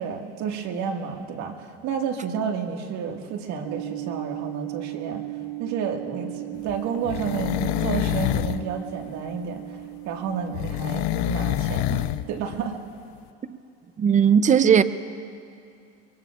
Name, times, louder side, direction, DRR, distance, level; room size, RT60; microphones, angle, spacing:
voice 1, 0.0-5.2 5.6-9.8 10.1-12.8, right 6 dB, 55° right, 3 dB, 1.9 m, -31 dB
sound 1, 3.6-12.7, right 20 dB, 75° right, 0.8 m, -37 dB
sound 2, 6.7-8.7 10.5-12.3 12.5-12.6, left 17 dB, 60° left, 0.5 m, -26 dB
voice 2, 14.0-14.8, right 7 dB, 25° right, 14 dB, 0.5 m, -17 dB
24.0 x 23.5 x 2.5 m, 2.4 s
supercardioid pair, 110°, 32 cm